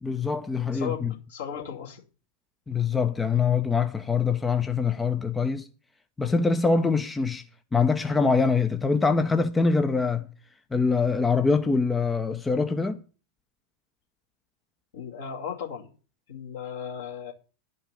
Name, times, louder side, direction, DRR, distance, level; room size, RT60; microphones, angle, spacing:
voice 1, 0.0-1.1 2.7-5.7 6.2-7.4 7.7-10.3 10.7-13.0, left 4 dB, 10° left, 0.7 m, -24 dB
voice 2, 0.7-2.0 14.9-15.9 16.3-17.3, left 7 dB, 60° left, 2.5 m, -36 dB
11.0 x 5.4 x 8.6 m
figure-of-eight pair, 90°, 0 cm